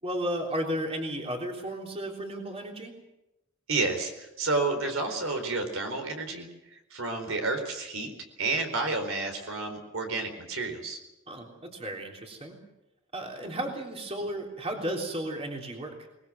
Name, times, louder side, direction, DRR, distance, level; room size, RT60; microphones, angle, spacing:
voice 1, 0.0-2.9 11.3-12.6 13.1-16.1, right 1 dB, 30° right, 1 dB, 3.5 m, -34 dB
voice 2, 3.7-8.1 8.4-11.0, right 3 dB, 70° right, 5 dB, 4.3 m, -30 dB
22.0 x 21.0 x 7.8 m, 0.94 s
head